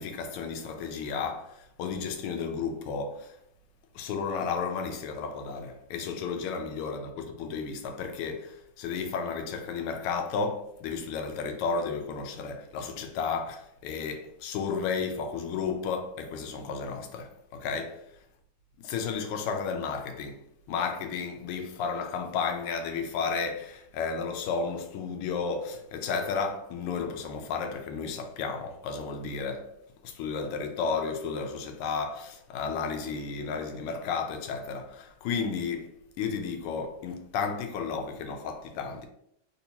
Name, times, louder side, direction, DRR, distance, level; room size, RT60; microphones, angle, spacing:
voice 1, 0.0-3.4 3.9-18.0 18.8-20.4 20.7-29.7 30.0-35.9 36.2-39.1, left 5 dB, 90° left, 1.5 m, -33 dB
3.7 x 2.7 x 2.8 m
omnidirectional pair, 2.4 m